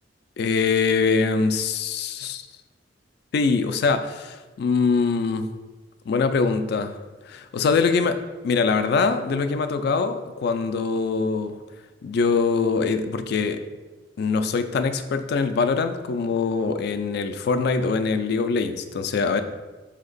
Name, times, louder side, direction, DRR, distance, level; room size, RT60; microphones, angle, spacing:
voice 1, 0.4-2.5 3.3-5.5 6.1-7.0 7.3-8.2 8.4-11.6 12.0-13.6 14.2-19.4, left 4 dB, 60° left, 9 dB, 0.3 m, -23 dB
4.2 x 2.8 x 3.9 m, 1.2 s
head